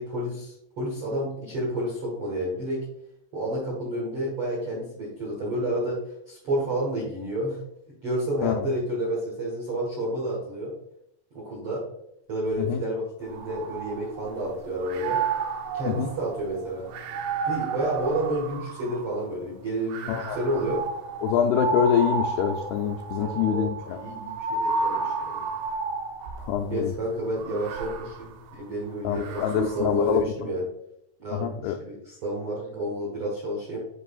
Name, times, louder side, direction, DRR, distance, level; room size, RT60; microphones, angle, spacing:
voice 1, 0.0-2.8 3.3-6.0 6.3-7.6 8.0-10.7 11.3-11.8 12.3-15.2 15.7-16.9 17.4-20.8 23.2-25.4 26.7-30.6 31.2-33.8, right 1 dB, 70° right, -3 dB, 1.3 m, -30 dB
sound 1, 13.2-14.4 14.8-19.2 19.9-26.6 27.3-29.9, right 4 dB, 85° right, 3.0 m, -32 dB
voice 2, 21.2-24.0 26.4-26.9 29.0-30.2 31.3-31.8, left 9 dB, 90° left, 4 dB, 2.2 m, -25 dB
9.7 x 4.7 x 2.4 m, 0.78 s
omnidirectional pair, 5.0 m